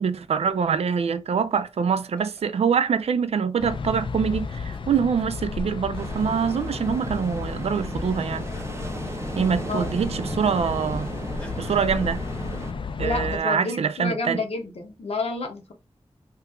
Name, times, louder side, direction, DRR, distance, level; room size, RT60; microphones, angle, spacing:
voice 1, 0.0-8.4 9.3-11.1 11.6-12.2 13.0-14.5, right 6 dB, 80° right, 0.4 m, -24 dB
sound 1, 1.4-3.4 4.2-6.8 7.4-7.6 7.9-10.0 10.3-10.4 10.9-11.8, left 1 dB, 10° left, 0.9 m, -45 dB
sound 2, 3.6-13.4, left 4 dB, 55° left, 0.4 m, -33 dB
Ocean, 6.0-12.7, right 2 dB, 25° right, 0.5 m, -36 dB
voice 2, 13.0-15.7, left 3 dB, 75° left, 0.8 m, -30 dB
2.8 x 2.4 x 3.4 m
wide cardioid pair, 85°, 11 cm